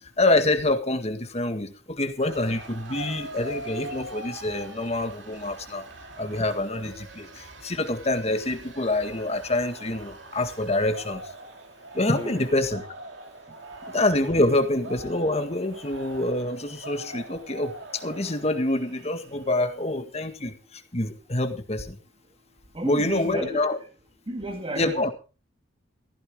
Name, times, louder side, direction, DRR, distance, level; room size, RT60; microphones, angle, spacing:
voice 1, 0.2-5.8 6.2-11.2 11.9-12.9 13.9-22.0 22.8-23.8 24.8-25.1, left 2 dB, 35° left, 1.9 m, -26 dB
sound 1, 2.2-20.0, right 2 dB, 75° right, 2.8 m, -43 dB
voice 2, 12.1-12.5 22.7-23.6 24.3-25.1, right 1 dB, 30° right, 1.8 m, -33 dB
15.5 x 15.0 x 3.8 m
head